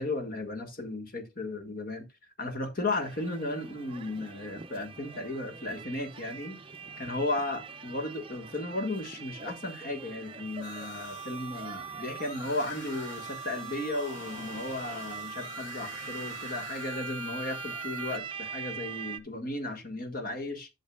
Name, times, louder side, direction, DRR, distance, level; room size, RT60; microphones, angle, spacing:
voice 1, 0.0-2.1 2.4-6.6 7.0-20.7, left 2 dB, 50° left, 1.8 m, -35 dB
sound 1, 3.0-19.2, right 6 dB, 25° right, 0.6 m, -44 dB
sound 2, 10.6-18.2, right 1 dB, 80° left, 3.4 m, -43 dB
11.5 x 6.4 x 2.4 m
head